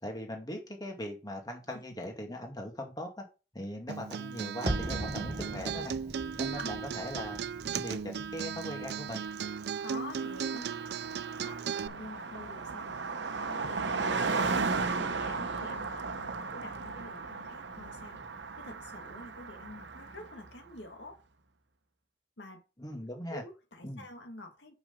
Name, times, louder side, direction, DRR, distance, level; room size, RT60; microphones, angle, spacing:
voice 1, 0.0-3.2 3.5-5.9 6.4-7.4 7.7-9.2 22.8-23.4 23.8-24.1, equal, 20° left, 2.1 m, -40 dB
Acoustic guitar, 3.9-11.9, right 7 dB, 65° right, 0.4 m, -36 dB
sound 1, 4.7-9.6 9.9-10.0, right 1 dB, 35° right, 1.1 m, -39 dB
Car passing by, 9.2-9.3 9.5-20.5, right 4 dB, 90° right, 0.9 m, -35 dB
voice 2, 9.8-10.7 11.3-18.2 18.6-21.2 22.4-22.6 23.3-24.7, left 1 dB, 90° left, 2.0 m, -47 dB
6.4 x 5.9 x 5.2 m
head